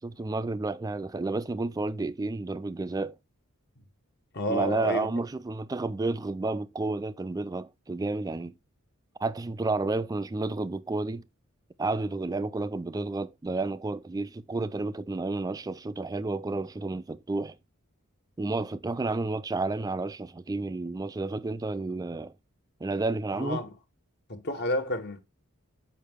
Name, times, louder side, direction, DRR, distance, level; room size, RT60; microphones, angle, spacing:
voice 1, 0.0-3.2 4.5-8.5 9.2-11.2 11.8-17.6 18.4-22.3 22.8-23.6, right 3 dB, 15° right, 0.3 m, -31 dB
voice 2, 4.3-5.1 23.3-23.7 24.3-25.2, equal, 50° left, 1.2 m, -30 dB
6.6 x 5.4 x 3.5 m
head